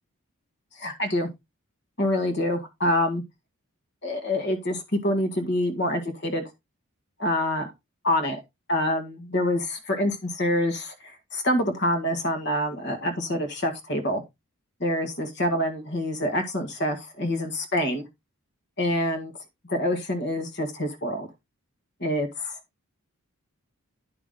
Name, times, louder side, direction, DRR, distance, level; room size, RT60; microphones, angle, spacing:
voice 1, 0.7-1.3 2.0-3.2 4.0-6.4 7.2-7.7 8.0-8.4 8.7-14.2 14.8-18.1 18.8-19.3 19.6-21.3 22.0-22.6, left 1 dB, 50° left, 1.8 m, -26 dB
10.0 x 5.9 x 3.8 m
head